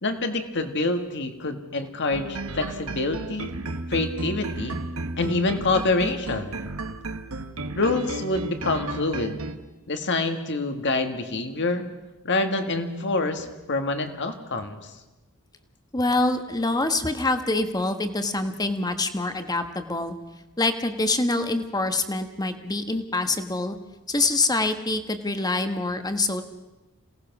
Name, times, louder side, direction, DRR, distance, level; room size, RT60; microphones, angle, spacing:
voice 1, 0.0-3.5 3.9-4.8 5.2-6.6 7.7-9.4 9.9-11.9 12.2-14.9, left 2 dB, 55° left, 7 dB, 1.9 m, -26 dB
sound 1, 2.1-9.6, right 2 dB, 70° right, 1.2 m, -33 dB
voice 2, 15.9-20.1 20.6-23.8 24.1-26.4, left 2 dB, 20° left, 8 dB, 1.3 m, -25 dB
27.5 x 18.0 x 6.1 m, 1.1 s
head